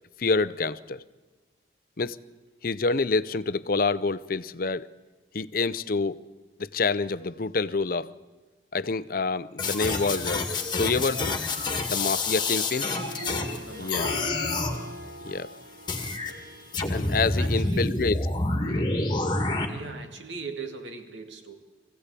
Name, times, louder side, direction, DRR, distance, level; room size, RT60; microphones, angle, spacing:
voice 1, 0.2-1.0 2.0-2.2 2.6-4.9 5.3-6.2 6.6-8.1 8.7-10.5 10.7-11.4 11.9-12.9 13.8-14.2 15.2-15.5 16.9-18.2 18.6-18.9, left 4 dB, 50° left, 16 dB, 0.6 m, -27 dB
sound 1, 9.6-13.6 13.9-14.8 15.9-16.3 16.7-19.7, left 2 dB, 25° left, 1.9 m, -28 dB
Harp, 12.4-17.7, equal, 50° right, 2.3 m, -43 dB
voice 2, 13.6-14.4 17.4-17.9 19.7-21.5, right 4 dB, 80° right, 5 dB, 2.4 m, -40 dB
23.5 x 16.0 x 8.4 m, 1.3 s
head